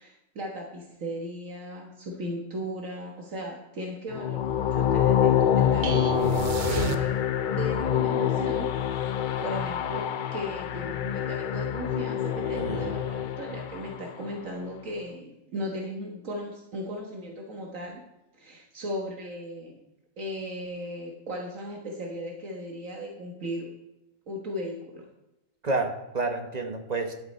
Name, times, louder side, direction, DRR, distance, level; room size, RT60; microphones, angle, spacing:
voice 1, 0.0-7.1 7.5-10.1 10.3-18.0 18.3-19.8 20.2-23.7 24.3-25.1, equal, 80° right, 0 dB, 1.8 m, -36 dB
sound 1, 4.1-14.2, left 10 dB, 65° left, 0.5 m, -26 dB
sound 2, 5.8-7.6, right 7 dB, 50° right, 0.6 m, -31 dB
voice 2, 12.4-13.0 25.6-27.1, right 3 dB, 35° right, 4 dB, 1.2 m, -30 dB
12.0 x 8.0 x 4.3 m, 0.96 s
omnidirectional pair, 1.3 m